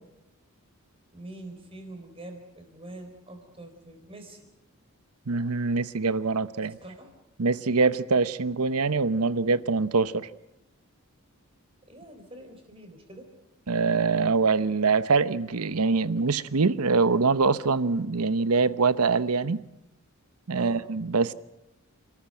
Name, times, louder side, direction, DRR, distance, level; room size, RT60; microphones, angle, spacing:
voice 1, 1.1-4.5 6.8-7.1 11.8-13.3 20.5-20.9, right 2 dB, 25° right, 4.3 m, -44 dB
voice 2, 5.3-6.8 7.4-10.3 13.7-19.6 20.5-21.3, right 4 dB, 85° right, 0.9 m, -24 dB
29.5 x 13.5 x 8.8 m
head